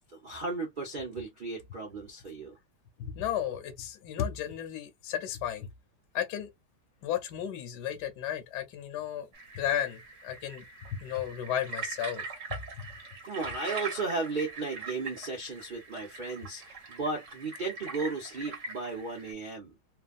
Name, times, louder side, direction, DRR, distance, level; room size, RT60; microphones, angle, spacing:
voice 1, 0.1-2.6 13.2-19.7, right 3 dB, 70° right, 0.4 m, -35 dB
voice 2, 3.0-5.7 6.1-6.5 7.0-9.3 9.5-10.7 10.9-12.2 12.5-12.9, left 10 dB, 65° left, 1.2 m, -34 dB
sound 1, 9.3-19.3, right 4 dB, 50° right, 1.0 m, -42 dB
3.3 x 2.2 x 2.4 m
omnidirectional pair, 2.2 m